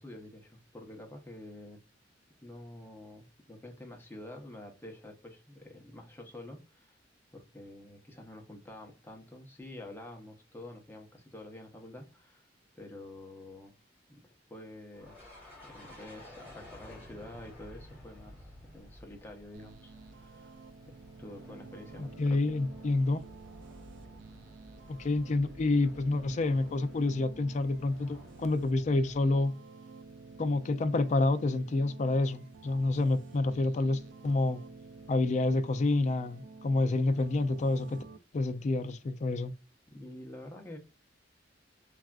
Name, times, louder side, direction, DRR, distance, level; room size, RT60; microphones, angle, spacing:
voice 1, 0.0-1.8 2.4-7.0 7.3-12.5 12.7-13.7 14.1-15.4 15.6-20.6 21.2-22.4 39.9-40.8, left 1 dB, 10° left, 0.7 m, -48 dB
sound 1, 14.9-29.2, left 1 dB, 10° right, 1.4 m, -53 dB
sound 2, 19.5-38.2, right 4 dB, 75° right, 0.4 m, -51 dB
voice 2, 22.0-23.2 24.9-29.5 30.4-34.6 35.1-38.0 38.3-39.5, left 2 dB, 40° left, 0.3 m, -28 dB
3.3 x 2.4 x 2.3 m
head